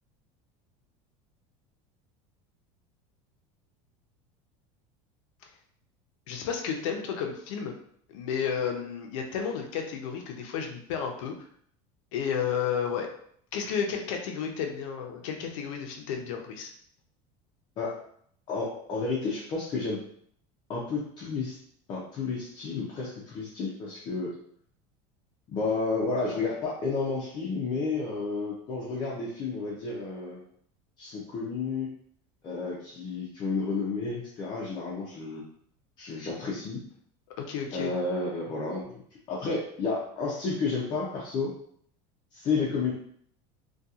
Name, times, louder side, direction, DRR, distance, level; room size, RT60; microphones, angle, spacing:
voice 1, 6.3-7.8 8.1-11.3 12.1-13.1 13.5-16.7 37.4-37.9, left 7 dB, 90° left, 3 dB, 0.6 m, -32 dB
voice 2, 18.5-20.0 20.7-21.6 21.9-24.3 25.5-30.4 31.0-31.9 32.4-35.4 36.0-36.8 37.7-39.0 39.3-41.5 42.3-42.9, left 4 dB, 25° left, -5 dB, 0.4 m, -31 dB
2.7 x 2.2 x 2.3 m, 0.63 s
cardioid pair, 175°, 16 cm